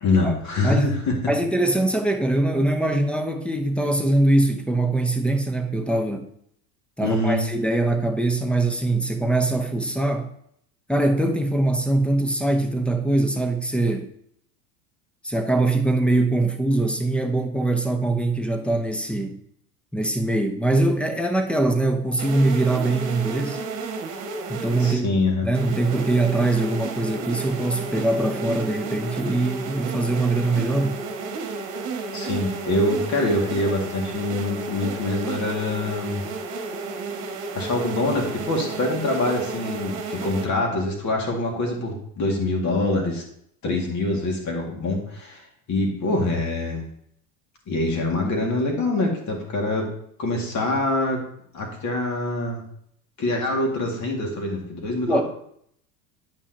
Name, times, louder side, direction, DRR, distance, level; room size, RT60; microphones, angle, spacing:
voice 1, 0.0-1.2 7.0-7.4 24.8-25.5 32.1-36.3 37.5-43.2 43.6-46.9 47.7-49.9 50.2-51.2 51.5-52.6 53.2-55.2, left 2 dB, 40° left, 2.1 m, -24 dB
voice 2, 1.3-6.3 7.0-10.3 10.9-14.1 15.2-19.4 19.9-23.6 24.5-25.2 25.4-31.0 43.7-43.8 55.1-55.2, right 2 dB, 5° left, 0.7 m, -22 dB
sound 1, 22.2-24.9 25.5-40.5, right 4 dB, 45° right, 1.4 m, -32 dB
8.7 x 5.5 x 2.9 m
hypercardioid pair, 90°, 44 cm